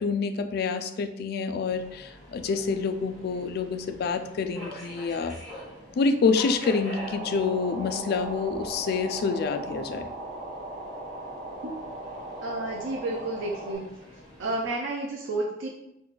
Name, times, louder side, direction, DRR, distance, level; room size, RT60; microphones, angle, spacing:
voice 1, 0.0-5.4 6.0-10.1, left 4 dB, 55° left, 8 dB, 0.3 m, -27 dB
Subway metro underground, 1.7-14.7, equal, ahead, 1.5 m, -45 dB
sound 1, 6.9-13.7, right 1 dB, 30° right, 1.1 m, -38 dB
voice 2, 12.4-13.8 14.4-15.7, right 2 dB, 90° right, -2 dB, 0.5 m, -31 dB
4.0 x 2.2 x 3.2 m, 0.86 s
head